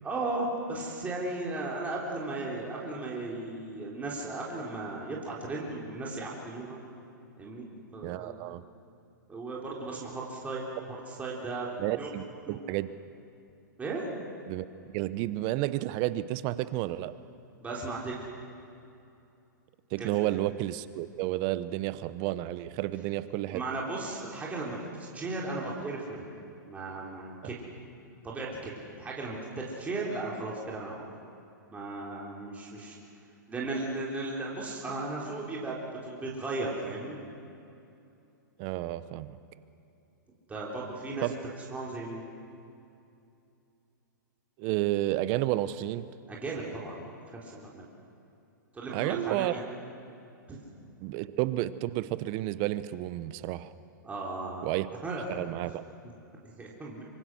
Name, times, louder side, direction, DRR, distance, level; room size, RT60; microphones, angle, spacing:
voice 1, 0.0-6.8 7.4-7.7 7.9-8.5 9.3-12.1 12.5-12.6 13.8-14.0 17.6-18.3 20.0-20.3 23.5-26.2 26.7-27.6 28.2-28.7 29.0-31.0 31.7-33.0 33.5-37.2 40.5-41.4 41.7-42.2 46.3-47.8 48.7-49.6 50.5-50.6 54.0-54.8 55.0-55.2 56.4-57.0, right 2 dB, 15° right, -4 dB, 3.9 m, -36 dB
voice 2, 8.0-8.6 11.8-12.9 14.5-14.6 14.9-17.1 19.9-23.6 38.6-39.4 41.2-41.3 44.6-46.1 48.9-49.5 51.0-53.7 54.6-54.9 55.3-55.7, right 16 dB, 40° right, 15 dB, 0.9 m, -31 dB
25.0 x 24.0 x 6.3 m, 2.7 s
hypercardioid pair, 120°, 11 cm